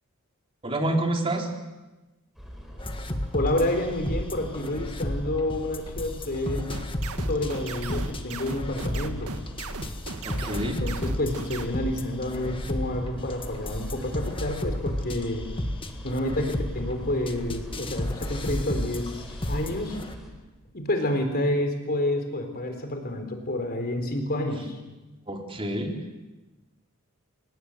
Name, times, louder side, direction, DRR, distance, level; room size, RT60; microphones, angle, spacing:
voice 1, 0.6-1.5 10.2-10.8 25.3-26.2, right 1 dB, 25° right, 2 dB, 3.4 m, -28 dB
sound 1, 2.3-20.3, equal, ahead, 5.1 m, -43 dB
sound 2, 2.8-20.2, left 1 dB, 25° left, 1.7 m, -33 dB
voice 2, 3.3-6.7 7.2-9.4 10.6-15.5 16.0-20.0 20.7-24.8, left 1 dB, 45° left, 5 dB, 4.1 m, -29 dB
sound 3, 6.7-11.7, right 4 dB, 90° right, 1.9 m, -37 dB
29.5 x 18.0 x 8.1 m, 1.1 s
head